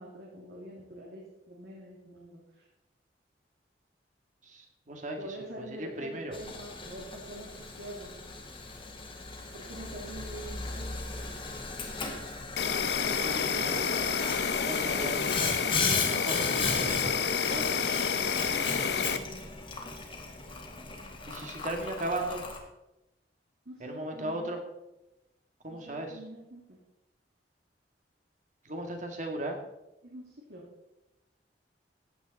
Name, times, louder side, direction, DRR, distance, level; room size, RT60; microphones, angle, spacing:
voice 1, 0.0-2.7 5.2-8.3 9.5-11.0 17.4-19.4 23.6-24.5 25.7-26.8 30.0-30.6, right 1 dB, 65° right, -3 dB, 2.8 m, -45 dB
voice 2, 4.4-6.4 12.9-13.8 14.6-15.5 16.0-17.2 18.5-18.8 21.3-22.4 23.8-24.6 25.6-26.2 28.6-29.6, right 1 dB, 45° right, 3 dB, 2.1 m, -37 dB
Boiling, 6.3-22.6, left 4 dB, 30° left, 2.0 m, -37 dB
Insect, 12.6-19.2, left 6 dB, 70° left, 0.8 m, -29 dB
15.0 x 9.5 x 4.2 m, 0.92 s
head